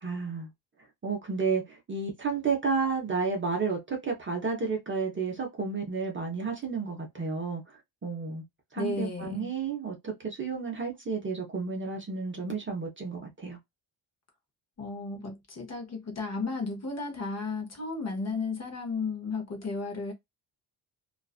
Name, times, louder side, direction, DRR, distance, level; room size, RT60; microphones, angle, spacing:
voice 1, 0.0-0.5 1.0-7.6 8.0-8.4 8.7-13.6, right 5 dB, 25° right, 0.6 m, -31 dB
voice 2, 8.8-9.5 14.8-20.1, left 3 dB, 35° left, 0.7 m, -34 dB
2.4 x 2.3 x 2.3 m
wide cardioid pair, 180°, 47 cm